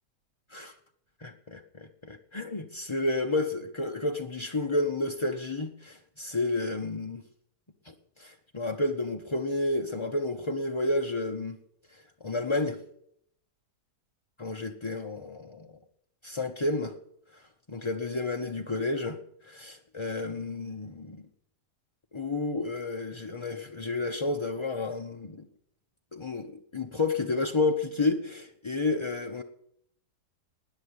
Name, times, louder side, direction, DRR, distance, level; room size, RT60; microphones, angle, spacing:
voice 1, 1.2-7.2 7.9-11.6 11.9-12.8 14.4-15.7 16.2-16.9 17.7-19.2 19.4-21.2 22.1-25.5 26.1-29.4, left 2 dB, 30° left, 0.5 m, -31 dB
20.0 x 6.9 x 9.8 m
omnidirectional pair, 1.8 m